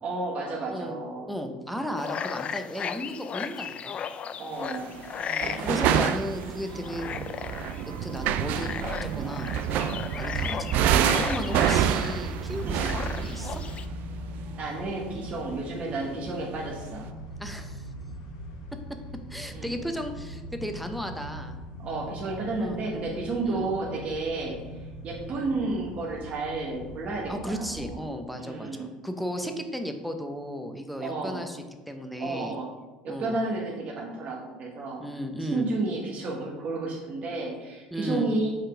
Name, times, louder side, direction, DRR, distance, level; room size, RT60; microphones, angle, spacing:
voice 1, 0.0-1.3 4.4-5.0 11.5-11.7 12.6-12.9 14.6-17.1 19.5-19.8 21.8-24.6 25.0-28.0 28.4-28.9 31.0-31.4 32.2-32.7 33.0-35.1 35.4-38.5, right 3 dB, 45° right, -3 dB, 1.2 m, -32 dB
voice 2, 0.7-1.0 1.3-4.0 5.2-7.1 7.8-9.5 10.2-13.6 15.7-15.8 17.4-17.9 19.3-21.5 22.6-22.8 23.4-23.7 27.3-32.5 33.1-33.4 35.0-35.7 37.9-38.3, equal, ahead, 5 dB, 0.8 m, -35 dB
sound 1, 2.0-13.9, left 7 dB, 40° left, 0.3 m, -36 dB
sound 2, 4.8-5.0 5.4-14.5, right 10 dB, 65° right, 0.3 m, -27 dB
sound 3, 10.1-27.9, equal, 90° left, 1.0 m, -41 dB
5.4 x 3.7 x 5.0 m, 1.2 s
supercardioid pair, 90°, 3 cm